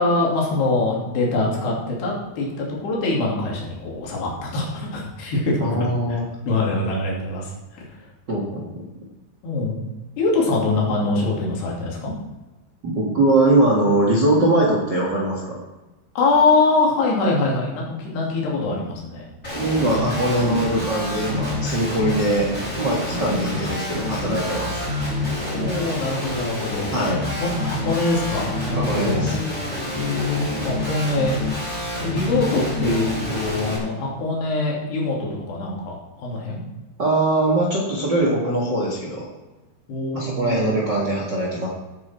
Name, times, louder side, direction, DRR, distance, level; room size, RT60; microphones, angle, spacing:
voice 1, 0.0-5.7 6.1-6.2 6.5-7.8 9.4-9.8 10.2-12.1 16.2-19.3 23.1-23.5 25.3-26.9 27.4-29.3 29.9-31.3 32.0-36.6 39.9-40.9, left 3 dB, 65° left, -3 dB, 4.8 m, -23 dB
voice 2, 5.6-6.2 8.3-8.8 12.8-15.6 19.5-22.5 22.8-24.8 26.9-27.2 28.7-29.3 37.0-39.3 40.1-41.7, right 1 dB, 55° right, -2 dB, 1.2 m, -21 dB
Guitar, 19.4-33.8, left 2 dB, 10° left, 3.7 m, -27 dB
15.0 x 8.7 x 4.6 m, 1.1 s
omnidirectional pair, 5.3 m